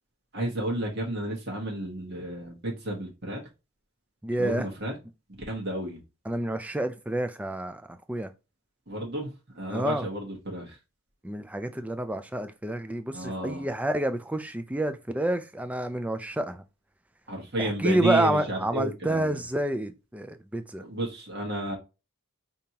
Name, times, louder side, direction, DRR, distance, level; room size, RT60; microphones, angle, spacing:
voice 1, 0.3-3.4 4.4-5.0 5.5-6.0 8.9-10.8 13.1-13.7 17.3-19.4 20.8-21.8, right 1 dB, 45° right, 1.2 m, -32 dB
voice 2, 4.2-4.7 6.3-8.3 9.7-10.1 11.2-16.6 17.6-20.8, right 1 dB, 5° right, 0.3 m, -29 dB
5.2 x 2.9 x 2.8 m
head